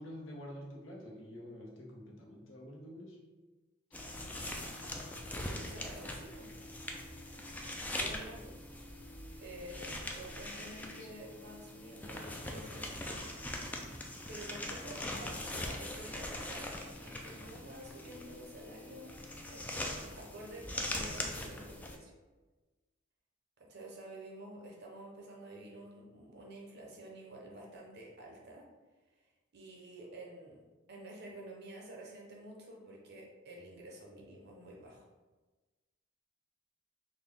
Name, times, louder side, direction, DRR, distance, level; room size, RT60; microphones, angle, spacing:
voice 1, 0.0-3.2 11.0-11.1, equal, 85° left, -2 dB, 0.9 m, -48 dB
sound 1, 3.9-22.0, left 1 dB, 10° left, 0.3 m, -42 dB
voice 2, 5.5-6.5 8.0-8.5 9.4-13.6 14.3-16.8 17.0-19.1 19.5-22.1 23.7-28.6 29.5-30.6 30.9-35.0, right 1 dB, 55° right, -1 dB, 0.8 m, -50 dB
4.0 x 2.2 x 3.5 m, 1.2 s
head